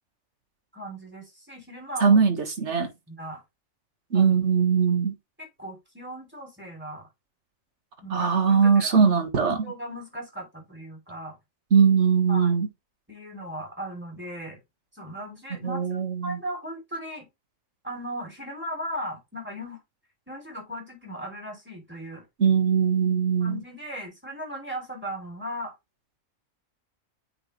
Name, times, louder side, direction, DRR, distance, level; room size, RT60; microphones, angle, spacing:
voice 1, 0.7-2.2 2.7-3.4 4.1-4.3 5.4-7.1 8.0-9.2 9.5-11.4 12.3-12.6 13.1-14.6 14.9-15.8 16.2-17.3 17.8-19.8 20.3-22.2 23.1-25.7, equal, 10° right, 3.1 m, -37 dB
voice 2, 2.0-2.9 4.1-5.2 8.1-9.7 11.7-12.7 15.6-16.4 22.4-23.6, right 6 dB, 60° right, 1.7 m, -21 dB
8.7 x 4.1 x 3.1 m
omnidirectional pair, 1.4 m